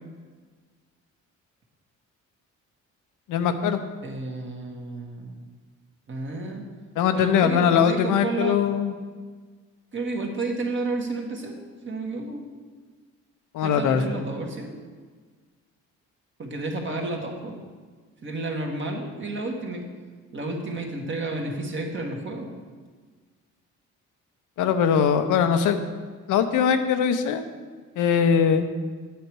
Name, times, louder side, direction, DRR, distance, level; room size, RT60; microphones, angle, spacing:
voice 1, 3.3-3.8 7.0-8.9 13.5-14.2 24.6-25.8 26.3-27.4 28.0-28.7, left 7 dB, 85° left, 9 dB, 0.8 m, -21 dB
voice 2, 4.0-5.4 6.1-6.6 7.1-8.7 9.9-12.5 13.6-14.8 16.4-17.6 18.2-19.9 20.3-22.5, right 2 dB, 40° right, 1 dB, 1.8 m, -31 dB
8.5 x 8.3 x 4.7 m, 1.5 s
cardioid pair, 90°, 30 cm